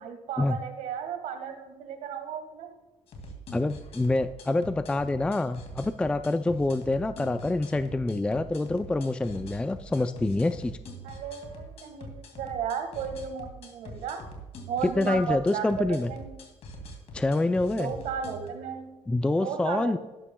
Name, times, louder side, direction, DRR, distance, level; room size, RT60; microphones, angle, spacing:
voice 1, 0.0-2.7 11.0-14.2 14.7-16.3 17.7-18.9 19.4-20.0, right 7 dB, 85° right, 6 dB, 1.5 m, -34 dB
sound 1, 3.1-18.5, equal, 55° left, 2.2 m, -44 dB
voice 2, 3.5-10.8 15.0-16.1 17.1-17.9 19.1-20.0, left 2 dB, 10° left, 11 dB, 0.3 m, -26 dB
12.5 x 11.5 x 2.2 m, 1.1 s
cardioid pair, 125°, 13 cm